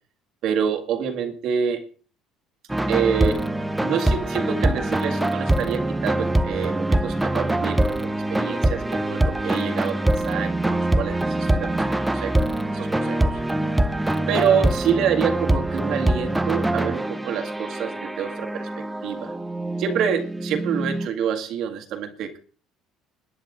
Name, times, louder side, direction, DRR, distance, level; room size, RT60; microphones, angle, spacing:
voice 1, 0.4-1.8 2.9-3.4 3.8-12.4 12.7-13.4 14.3-19.3 19.8-22.4, right 7 dB, 55° right, 4 dB, 1.9 m, -27 dB
sound 1, 2.7-21.1, right 1 dB, 5° right, 0.7 m, -24 dB
21.5 x 10.0 x 3.9 m, 0.40 s
cardioid pair, 150°, 0 cm